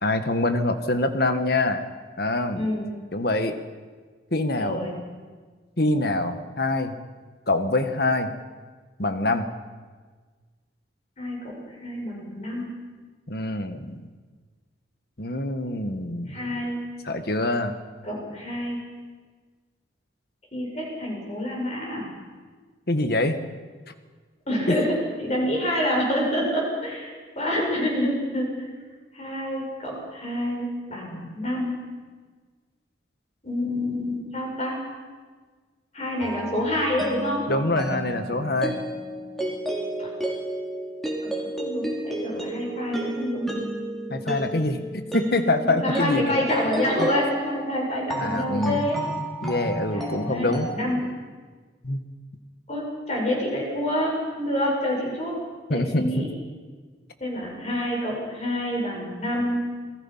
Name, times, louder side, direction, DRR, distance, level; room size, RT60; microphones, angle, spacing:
voice 1, 0.0-1.8 2.2-2.7 3.1-3.6 4.3-4.9 5.8-6.9 7.5-8.3 9.0-9.5 13.3-14.0 15.2-16.4 17.0-17.8 22.9-23.4 24.7-24.8 37.5-38.8 44.1-46.4 47.0-47.1 47.9-48.9 49.4-50.7 51.8-52.0 55.7-56.3, left 2 dB, 55° left, 8 dB, 1.6 m, -25 dB
voice 2, 2.5-2.9 4.5-4.9 11.2-11.4 11.8-12.7 16.3-16.8 18.0-18.8 20.5-22.1 24.5-28.7 29.1-31.8 33.4-34.8 35.9-37.5 40.0-40.1 41.2-43.6 45.6-49.0 49.9-51.1 52.7-55.4 55.7-56.3 57.2-59.6, left 1 dB, 35° left, -2 dB, 6.7 m, -27 dB
sound 1, 36.2-50.8, right 1 dB, ahead, 3.5 m, -32 dB
28.0 x 19.0 x 5.8 m, 1.5 s
head